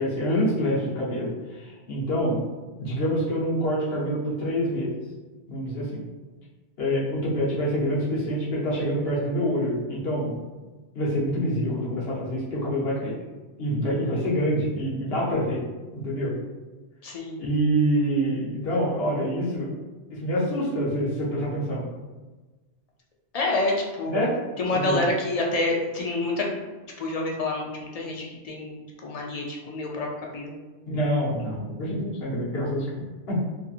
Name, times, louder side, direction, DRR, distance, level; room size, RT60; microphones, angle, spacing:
voice 1, 0.0-2.4 2.8-4.9 5.5-6.0 6.8-10.4 10.9-13.2 13.6-15.6 15.9-16.3 17.4-19.7 20.1-21.9 24.1-24.3 24.7-25.0 30.9-32.9 33.3-33.4, equal, 70° left, -6 dB, 1.1 m, -26 dB
voice 2, 17.0-17.4 23.3-24.3 24.6-26.6 27.0-30.6, left 2 dB, 50° left, -1 dB, 0.5 m, -28 dB
2.7 x 2.6 x 2.4 m, 1.2 s
omnidirectional pair, 1.1 m